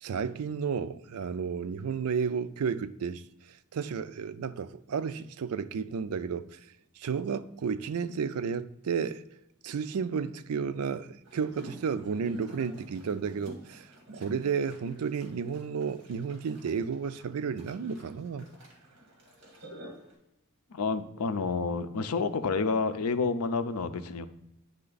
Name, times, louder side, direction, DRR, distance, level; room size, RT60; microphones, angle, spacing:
voice 1, 0.0-3.2 3.7-6.6 7.0-9.2 9.6-18.5, right 6 dB, 75° right, 0.4 m, -32 dB
sound 1, 11.2-20.1, equal, 60° right, 2.0 m, -50 dB
voice 2, 20.7-24.3, left 4 dB, 85° left, 0.5 m, -29 dB
9.8 x 3.3 x 3.9 m
head